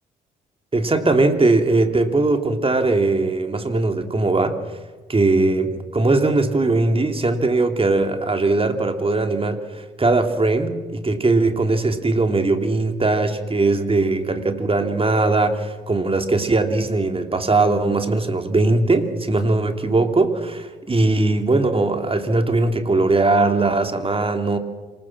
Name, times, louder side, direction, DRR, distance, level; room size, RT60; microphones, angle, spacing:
voice 1, 0.7-4.6 5.1-24.6, right 2 dB, 25° right, 6 dB, 3.1 m, -20 dB
27.0 x 20.0 x 6.1 m, 1.3 s
hypercardioid pair, 45°, 21 cm